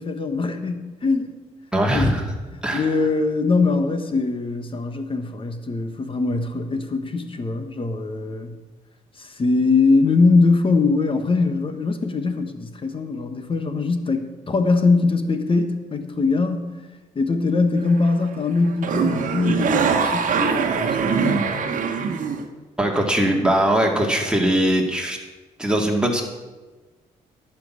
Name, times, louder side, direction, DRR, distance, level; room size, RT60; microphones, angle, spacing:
voice 1, 0.0-1.3 1.9-2.1 2.7-8.6 9.2-16.7 17.1-21.5, left 3 dB, 35° left, 8 dB, 1.3 m, -22 dB
voice 2, 1.7-2.2 2.6-2.9 22.8-25.2 25.6-26.2, right 1 dB, 5° right, 1 dB, 2.2 m, -20 dB
sound 1, 17.8-18.3 18.5-22.5, right 6 dB, 65° right, 1.2 m, -22 dB
11.5 x 6.0 x 8.4 m, 1.3 s
cardioid pair, 75°, 15 cm